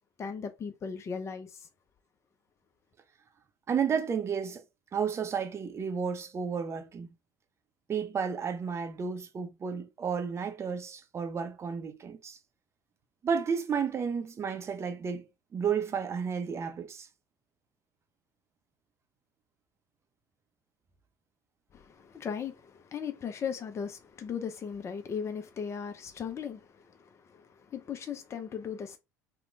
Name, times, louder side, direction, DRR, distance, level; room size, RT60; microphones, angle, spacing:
voice 1, 0.2-1.7 21.7-29.0, left 7 dB, 30° left, 0.5 m, -38 dB
voice 2, 3.7-4.6 4.9-7.1 7.9-12.4 13.2-17.1, right 6 dB, 30° right, 0.6 m, -32 dB
2.9 x 2.1 x 2.5 m
hypercardioid pair, 70°, 9 cm